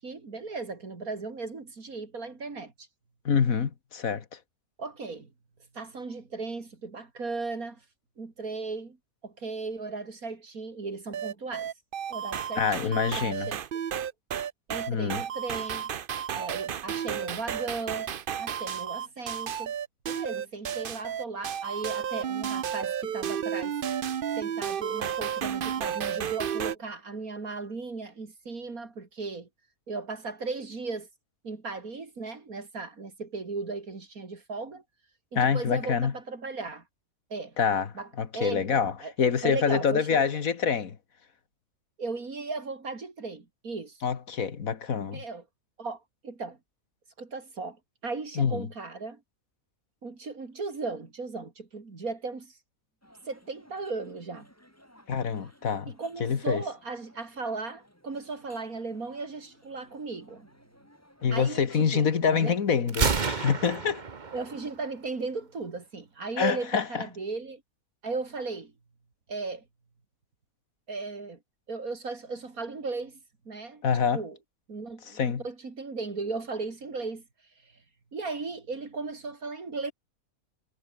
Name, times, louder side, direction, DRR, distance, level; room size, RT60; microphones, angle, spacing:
voice 1, 0.0-2.9 4.8-5.3 5.7-7.8 8.2-9.0 9.2-11.7 12.1-13.6 13.9-14.0 14.7-15.9 16.3-18.1 18.4-19.7 20.1-23.8 24.4-29.5 29.9-31.1 31.4-34.8 35.3-36.8 37.3-37.6 38.0-38.1 38.3-40.2 42.0-44.0 45.1-45.4 45.8-46.6 47.2-47.8 48.0-49.2 50.0-52.5 53.3-54.5 55.9-60.5 61.3-62.6 64.3-67.6 68.0-68.7 69.3-69.6 70.9-71.4 71.7-73.2 73.5-73.8 74.1-74.4 74.7-77.2 78.1-79.9, right 3 dB, 75° right, 3.4 m, -36 dB
voice 2, 3.3-4.2 12.6-13.5 14.9-15.2 35.4-36.1 37.6-37.9 38.2-38.9 39.2-41.0 44.0-45.2 48.4-48.7 55.1-55.9 56.2-56.6 61.2-64.0 66.4-67.0 73.8-74.2 75.1-75.4, left 6 dB, 70° left, 2.0 m, -26 dB
sound 1, 11.1-26.8, right 8 dB, 50° right, 0.7 m, -32 dB
sound 2, 53.0-63.5, equal, 10° left, 7.9 m, -58 dB
Gunshot gunfire, 62.9-64.9, right 5 dB, 35° right, 1.2 m, -29 dB
omnidirectional pair, 1.5 m